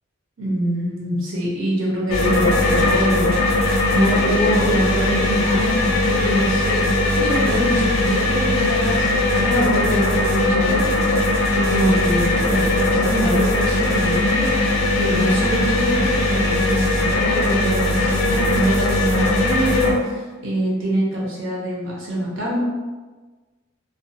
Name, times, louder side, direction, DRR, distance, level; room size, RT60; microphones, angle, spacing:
voice 1, 0.4-10.8 11.5-14.5 14.9-22.6, equal, 75° right, -4 dB, 0.7 m, -24 dB
sound 1, 2.1-19.9, left 2 dB, 70° left, 0.5 m, -19 dB
2.3 x 2.3 x 2.6 m, 1.3 s
head